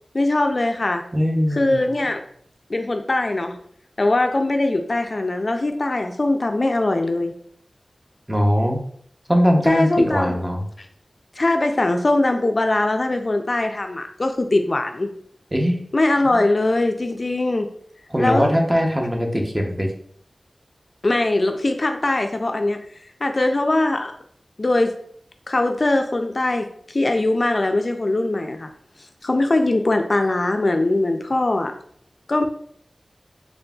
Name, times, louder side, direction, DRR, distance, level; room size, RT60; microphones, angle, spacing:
voice 1, 0.1-1.0 1.5-2.2 2.7-3.6 4.0-7.3 9.7-10.4 11.4-15.1 15.9-17.7 18.2-18.5 21.0-22.8 23.2-24.1 24.6-25.0 25.5-28.7 29.2-31.7 32.3-32.4, left 2 dB, 45° left, 6 dB, 0.3 m, -21 dB
voice 2, 1.1-1.8 8.3-8.8 9.3-10.7 15.5-15.8 18.1-19.9, equal, 15° right, 2 dB, 0.6 m, -20 dB
3.8 x 3.5 x 2.3 m, 0.63 s
wide cardioid pair, 75°, 0 cm